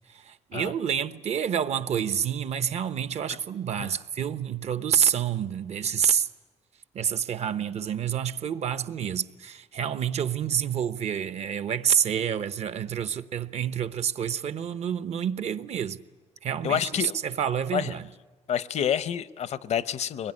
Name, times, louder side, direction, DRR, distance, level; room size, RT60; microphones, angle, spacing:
voice 1, 0.1-6.3 6.9-16.0 16.4-18.1, right 8 dB, 65° right, 1.0 m, -28 dB
voice 2, 16.6-17.2 17.7-17.9 18.5-20.3, left 9 dB, 70° left, 0.7 m, -28 dB
24.0 x 21.0 x 9.8 m
cardioid pair, 115°, 12 cm